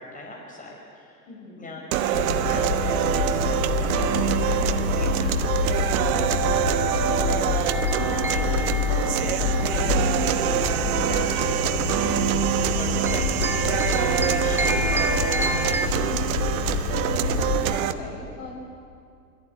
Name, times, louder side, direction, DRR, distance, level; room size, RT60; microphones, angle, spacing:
voice 1, 0.0-1.2 1.6-6.4 6.7-16.4, left 1 dB, 15° left, -1 dB, 5.3 m, -39 dB
voice 2, 1.3-1.7 7.0-7.3 17.2-18.5, left 3 dB, 55° left, 0 dB, 5.8 m, -40 dB
sound 1, 1.9-17.9, right 11 dB, 60° right, 1.2 m, -25 dB
sound 2, 2.1-17.6, left 5 dB, 80° left, 4.0 m, -27 dB
sound 3, 7.7-15.9, right 1 dB, 5° right, 0.9 m, -32 dB
22.5 x 14.5 x 9.1 m, 2.3 s
hypercardioid pair, 105°, 47 cm